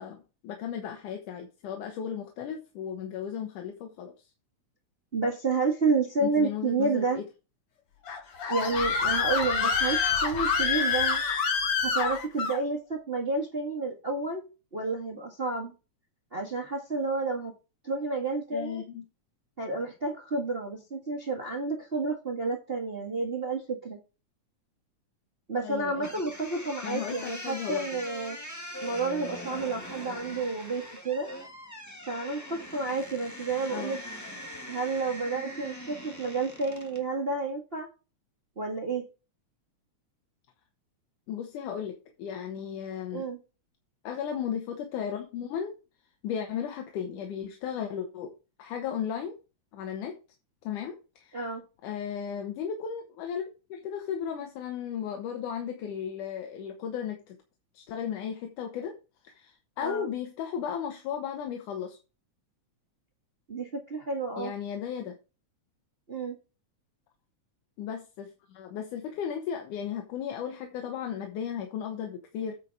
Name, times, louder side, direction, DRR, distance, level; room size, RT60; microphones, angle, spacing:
voice 1, 0.0-4.1 6.2-7.3 18.5-19.0 25.6-26.1 26.8-27.9 33.7-34.0 41.3-43.3 44.0-45.7 46.2-48.3 48.6-49.3 49.7-50.2 50.6-51.4 51.8-57.4 57.7-59.0 59.3-62.0 64.4-65.2 67.8-72.5, left 8 dB, 85° left, 4 dB, 2.6 m, -35 dB
voice 2, 5.1-7.2 8.5-11.2 11.8-14.4 14.7-15.7 16.3-17.5 17.8-18.8 19.6-24.0 25.5-28.4 28.8-31.3 32.1-34.0 34.7-37.9 38.6-39.0 43.1-43.4 51.3-51.6 59.8-60.1 63.5-64.5 66.1-66.4, right 3 dB, 30° right, 1 dB, 1.1 m, -30 dB
Screaming, 8.1-12.6, left 5 dB, 55° left, 2.2 m, -27 dB
sound 1, 26.0-37.1, equal, 20° left, 0.5 m, -42 dB
9.1 x 5.1 x 4.6 m, 0.30 s
omnidirectional pair, 3.5 m